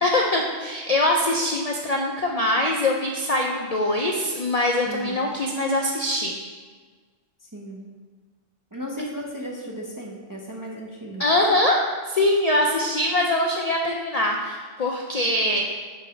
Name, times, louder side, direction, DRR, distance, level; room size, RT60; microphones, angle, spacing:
voice 1, 0.0-6.3 11.2-15.6, left 1 dB, 55° left, 0 dB, 0.4 m, -23 dB
voice 2, 4.9-5.2 7.4-7.8 8.7-11.3, right 1 dB, 25° right, -2 dB, 0.4 m, -35 dB
5.3 x 4.0 x 5.6 m, 1.5 s
omnidirectional pair, 1.2 m